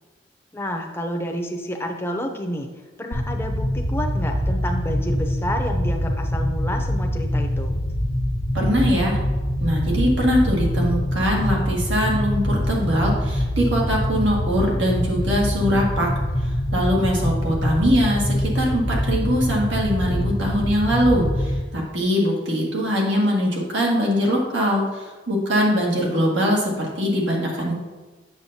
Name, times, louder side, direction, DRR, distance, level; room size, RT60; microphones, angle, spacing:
voice 1, 0.5-2.7 3.0-7.8, equal, 10° left, 3 dB, 0.6 m, -29 dB
sound 1, 3.1-21.6, equal, 85° left, 1.0 m, -24 dB
voice 2, 8.5-9.2 9.6-16.1 16.7-27.7, equal, 80° right, -2 dB, 1.8 m, -22 dB
8.1 x 6.6 x 2.8 m, 1.3 s
head